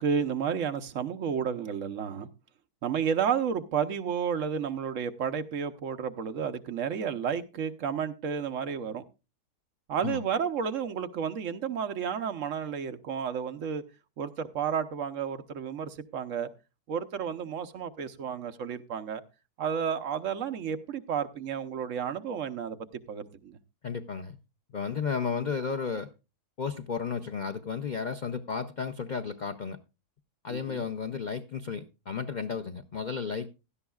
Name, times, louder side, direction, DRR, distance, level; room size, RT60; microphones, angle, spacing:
voice 1, 0.0-2.3 2.8-9.0 9.9-13.8 14.2-16.5 16.9-19.2 19.6-22.8 23.1-23.6 30.5-30.9, right 7 dB, 60° right, 1.1 m, -31 dB
voice 2, 23.8-24.4 24.7-26.1 26.6-29.8 30.4-33.5, left 6 dB, 70° left, 0.4 m, -33 dB
16.5 x 12.5 x 2.3 m
omnidirectional pair, 1.7 m